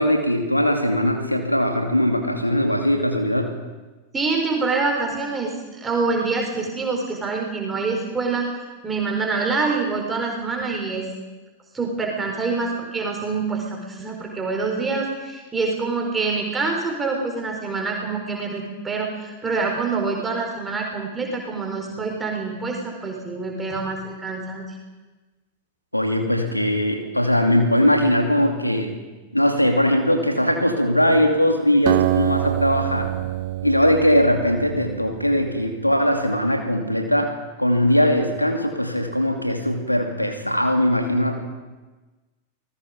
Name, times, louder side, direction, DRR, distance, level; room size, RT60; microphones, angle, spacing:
voice 1, 0.0-3.5 25.9-29.0 29.3-33.1 33.6-41.4, equal, 90° left, 4 dB, 2.6 m, -20 dB
voice 2, 4.1-8.5 8.8-11.1 11.7-24.8, right 4 dB, 15° right, 0 dB, 4.3 m, -26 dB
Acoustic guitar, 31.9-35.4, right 15 dB, 50° right, 0.8 m, -25 dB
29.0 x 19.5 x 5.2 m, 1.2 s
figure-of-eight pair, 90°, 0 cm